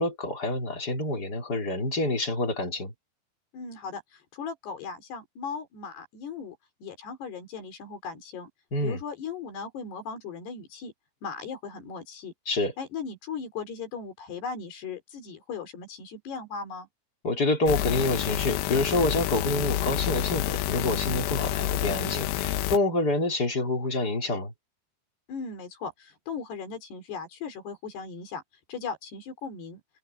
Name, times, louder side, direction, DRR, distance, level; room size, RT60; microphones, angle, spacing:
voice 1, 0.0-2.9 8.7-9.0 12.5-12.7 17.2-24.5, left 2 dB, 20° left, 3.7 m, -27 dB
voice 2, 3.5-6.6 6.8-8.5 8.8-10.9 11.2-12.3 12.8-16.9 25.3-28.4 28.7-29.8, left 5 dB, 60° left, 5.7 m, -37 dB
sound 1, 17.7-22.8, left 13 dB, 75° left, 3.0 m, -28 dB
omnidirectional pair, 5.5 m